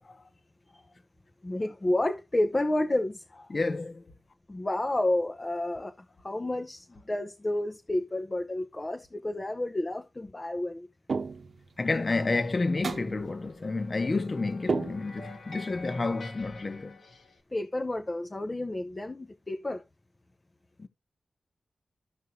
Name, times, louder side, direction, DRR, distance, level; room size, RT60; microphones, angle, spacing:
voice 1, 1.4-3.2 4.5-5.9 6.2-10.9 17.5-19.8, left 1 dB, 30° left, 0.7 m, -30 dB
voice 2, 3.5-4.0 11.8-17.0 20.8-20.9, left 3 dB, 45° left, 1.1 m, -30 dB
sound 1, 11.1-11.7 12.8-13.3 14.7-15.4, right 4 dB, 70° right, 0.9 m, -32 dB
sound 2, 11.9-17.4, left 3 dB, 90° left, 2.3 m, -48 dB
14.5 x 5.4 x 2.7 m
wide cardioid pair, 75°, 0 cm